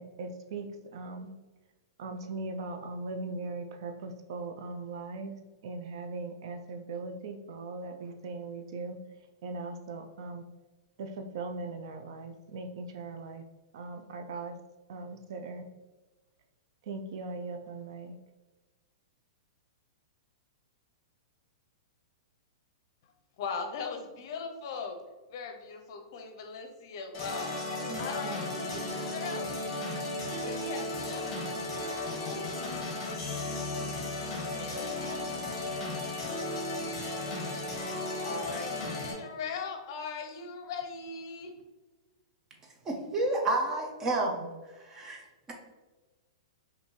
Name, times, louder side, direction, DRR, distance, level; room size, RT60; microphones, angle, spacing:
voice 1, 0.0-1.3 2.0-9.0 9.4-10.4 11.0-13.4 13.7-14.5 14.9-15.6 16.8-18.1 27.9-28.4, right 3 dB, 60° right, 6 dB, 0.5 m, -39 dB
voice 2, 23.4-25.0 25.3-27.6 28.0-29.5 30.4-31.3 34.3-35.2 38.2-41.5, left 5 dB, 55° left, 5 dB, 0.7 m, -39 dB
sound 1, 27.1-39.1, left 2 dB, 25° left, 1.4 m, -35 dB
voice 3, 42.8-44.5 44.8-45.5, right 2 dB, 15° right, 1 dB, 0.7 m, -30 dB
5.4 x 2.6 x 3.1 m, 1.2 s
hypercardioid pair, 155°, 3 cm